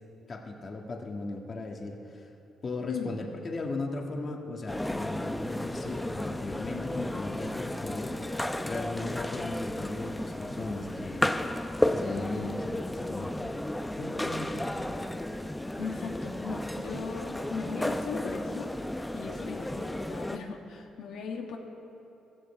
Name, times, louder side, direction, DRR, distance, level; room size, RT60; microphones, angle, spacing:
voice 1, 0.3-2.3 2.6-8.2 8.7-11.3 11.8-13.3 13.9-14.8, left 3 dB, 40° left, 2 dB, 1.6 m, -37 dB
sound 1, 4.7-20.4, left 1 dB, 10° left, 0.6 m, -33 dB
voice 2, 15.8-18.7 19.1-21.6, left 5 dB, 80° left, 1 dB, 1.6 m, -38 dB
16.0 x 15.0 x 4.4 m, 2.8 s
cardioid pair, 90°, 0 cm